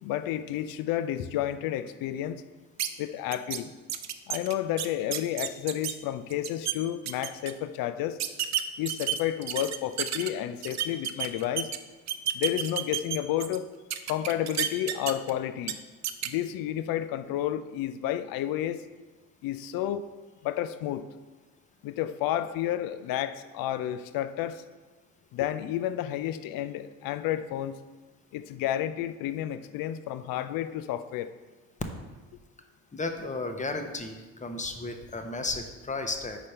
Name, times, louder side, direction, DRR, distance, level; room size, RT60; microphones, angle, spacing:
voice 1, 0.0-2.4 3.0-3.7 4.3-8.2 8.8-11.7 12.3-13.7 14.1-15.8 16.2-18.8 19.4-20.1 20.4-21.0 21.8-24.6 25.3-27.8 28.3-31.3, left 12 dB, 60° left, 12 dB, 0.5 m, -31 dB
sound 1, 2.8-2.9 3.3-3.6 3.9-5.9 6.3-6.7 7.1-7.5 8.2-10.3 10.6-11.8 12.1-13.6 13.9-15.3 15.6-15.7 16.0-16.3, right 11 dB, 45° right, 0.5 m, -30 dB
voice 2, 32.9-36.4, left 3 dB, 20° left, 6 dB, 0.8 m, -34 dB
5.1 x 4.3 x 5.3 m, 1.2 s
supercardioid pair, 65°, 39 cm